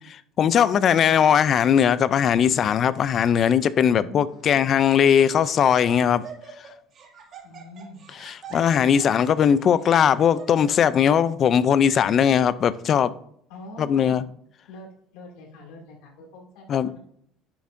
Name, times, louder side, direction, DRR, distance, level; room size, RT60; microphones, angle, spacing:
voice 1, 0.1-6.3 8.2-13.1 13.8-14.2 16.7-16.9, left 8 dB, 40° left, 16 dB, 0.4 m, -19 dB
voice 2, 3.9-4.7 7.4-8.0 13.5-14.3 14.7-14.9 15.1-17.0, left 2 dB, 85° left, 0 dB, 2.4 m, -44 dB
Laughter, 4.3-4.5 4.8-5.6 5.8-10.9, right 6 dB, 45° right, 2.0 m, -45 dB
11.0 x 6.9 x 2.6 m, 0.66 s
cardioid pair, 135°, 0 cm